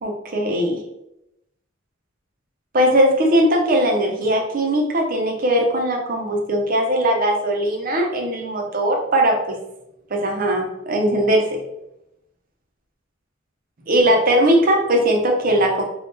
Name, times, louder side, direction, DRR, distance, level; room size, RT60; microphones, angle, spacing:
voice 1, 0.0-0.8 2.7-9.6 10.1-11.6 13.9-15.8, right 1 dB, 45° right, 1 dB, 0.6 m, -19 dB
3.5 x 2.3 x 2.6 m, 0.85 s
head